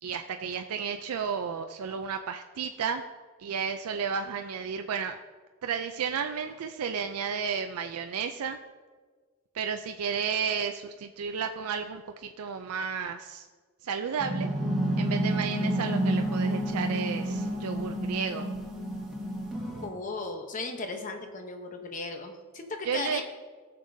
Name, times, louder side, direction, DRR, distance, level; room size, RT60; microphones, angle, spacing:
voice 1, 0.0-3.0 3.4-5.2 5.6-8.6 9.5-13.5 13.8-14.5 15.0-18.5 22.9-23.2, right 6 dB, 80° right, 6 dB, 0.4 m, -32 dB
sound 1, 14.2-19.8, right 1 dB, ahead, 1.4 m, -29 dB
voice 2, 19.8-23.2, left 3 dB, 35° left, 5 dB, 0.8 m, -36 dB
16.5 x 6.7 x 2.7 m, 1.5 s
head